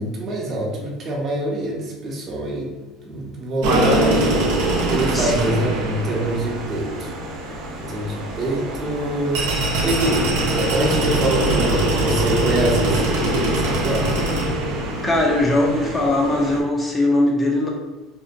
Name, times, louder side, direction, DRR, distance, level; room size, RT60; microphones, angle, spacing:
voice 1, 0.0-2.7 3.0-4.4 4.9-7.1 7.8-9.5 9.8-14.1, right 1 dB, 35° right, -2 dB, 0.7 m, -25 dB
sound 1, 3.6-16.6, right 1 dB, 90° right, 0.6 m, -22 dB
voice 2, 5.1-5.7 15.0-17.7, left 2 dB, 15° left, -1 dB, 0.4 m, -20 dB
2.7 x 2.1 x 2.5 m, 1.1 s
cardioid pair, 140°, 0 cm